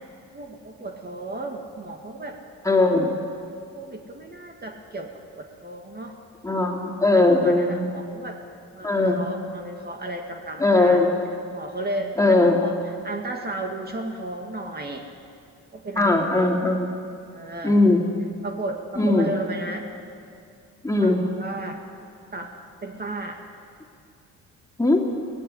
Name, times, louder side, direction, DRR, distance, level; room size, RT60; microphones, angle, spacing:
voice 1, 0.3-2.4 3.7-5.1 5.3-6.1 7.1-8.4 8.7-11.0 11.5-12.2 12.6-12.7 13.0-15.1 15.7-16.5 17.3-17.8 18.4-19.9 21.0-21.8 22.3-22.5 22.8-23.4, right 2 dB, 30° right, 2 dB, 1.9 m, -34 dB
voice 2, 2.6-3.1 6.4-7.9 8.8-9.2 10.6-11.1 12.2-12.6 16.0-16.9 17.6-18.1 19.0-19.3 20.8-21.3 24.8-25.1, left 2 dB, 10° left, 1 dB, 3.0 m, -19 dB
17.0 x 15.0 x 9.9 m, 2.4 s
cardioid pair, 90°, 30 cm